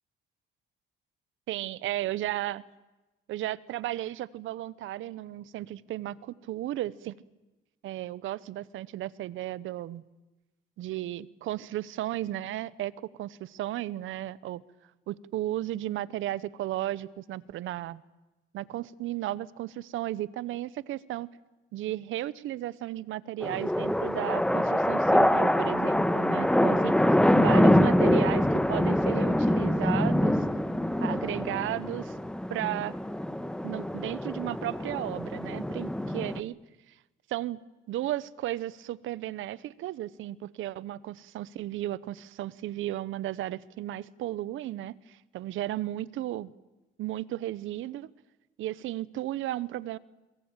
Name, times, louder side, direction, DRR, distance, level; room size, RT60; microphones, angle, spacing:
voice 1, 1.5-2.6 3.3-7.1 7.8-10.0 10.8-14.6 15.1-18.0 18.5-21.3 21.7-26.9 27.4-30.4 31.0-32.2 32.5-32.9 33.6-36.6 36.9-37.0 37.3-37.6 37.9-46.5 47.0-48.1 48.6-50.0, right 14 dB, 85° right, 20 dB, 0.9 m, -34 dB
sound 1, 23.4-36.4, left 1 dB, 5° left, 1.2 m, -25 dB
22.5 x 22.0 x 9.0 m, 1.1 s
cardioid pair, 90°, 20 cm